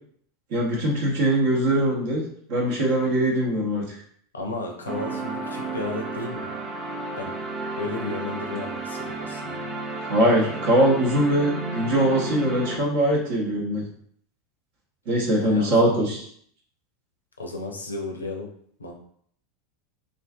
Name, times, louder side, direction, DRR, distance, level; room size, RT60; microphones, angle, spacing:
voice 1, 0.5-2.2 2.5-3.8 10.1-13.8 15.1-16.2, right 1 dB, 55° right, -4 dB, 0.7 m, -22 dB
voice 2, 4.3-6.5 7.2-7.4 7.8-9.6 15.4-16.1 17.4-18.5 18.8-18.9, left 2 dB, 85° left, 1 dB, 0.5 m, -33 dB
sound 1, 4.9-12.8, right 3 dB, 25° right, 0.4 m, -32 dB
2.4 x 2.4 x 2.3 m, 0.63 s
figure-of-eight pair, 85°, 0 cm